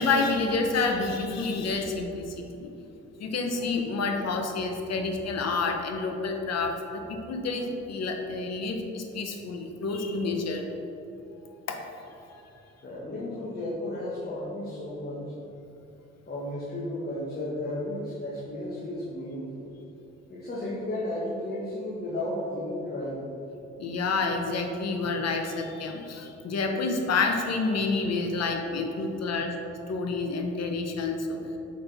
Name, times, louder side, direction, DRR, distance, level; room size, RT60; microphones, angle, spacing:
voice 1, 0.0-2.7 3.2-10.6 11.5-12.4 23.8-29.5 29.9-31.4, left 3 dB, 55° left, 3 dB, 0.9 m, -29 dB
voice 2, 12.8-15.2 16.3-19.7 20.3-23.2, left 1 dB, 30° left, -7 dB, 1.5 m, -33 dB
6.5 x 5.5 x 3.5 m, 2.9 s
cardioid pair, 90°, 30 cm